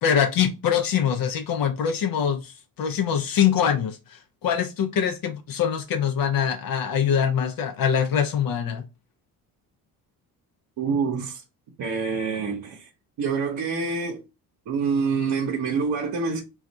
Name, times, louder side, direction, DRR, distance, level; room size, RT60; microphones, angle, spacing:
voice 1, 0.0-8.9, left 8 dB, 60° left, 0.5 m, -24 dB
voice 2, 10.8-11.4 11.8-12.9 13.2-14.2 14.7-16.4, right 5 dB, 60° right, 0.8 m, -26 dB
2.5 x 2.4 x 4.1 m
cardioid pair, 95°, 39 cm